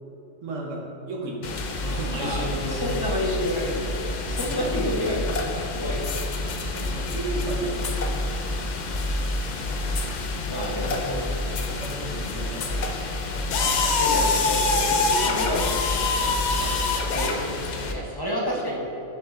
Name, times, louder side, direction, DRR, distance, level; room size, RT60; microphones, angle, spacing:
voice 1, 0.4-3.0 4.5-4.6 6.7-8.1 10.3-11.2 11.7-13.1 16.4-16.7, right 2 dB, 70° right, -2 dB, 1.3 m, -34 dB
sound 1, 1.4-17.9, left 3 dB, 65° left, 0.4 m, -27 dB
voice 2, 2.2-6.1 10.5-11.4 13.6-15.8 16.1-16.3 16.6-16.8 17.1-18.8, left 1 dB, 20° left, -4 dB, 0.7 m, -30 dB
7.0 x 6.5 x 2.4 m, 2.9 s
omnidirectional pair, 1.3 m